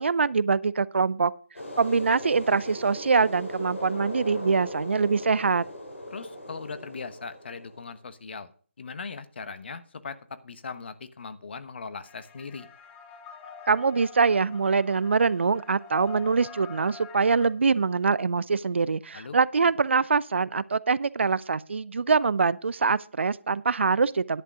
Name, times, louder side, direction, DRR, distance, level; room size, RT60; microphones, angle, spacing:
voice 1, 0.0-1.3 1.8-5.6 13.7-24.4, right 4 dB, 65° right, 0.5 m, -24 dB
sound 1, 1.5-7.9, left 1 dB, 90° left, 5.0 m, -39 dB
voice 2, 6.1-8.5 8.8-10.2 10.4-12.7 19.1-19.4, left 4 dB, 55° left, 1.1 m, -39 dB
sound 2, 12.0-17.5, left 6 dB, 15° left, 1.2 m, -46 dB
11.0 x 8.3 x 4.9 m
figure-of-eight pair, 155°, 7 cm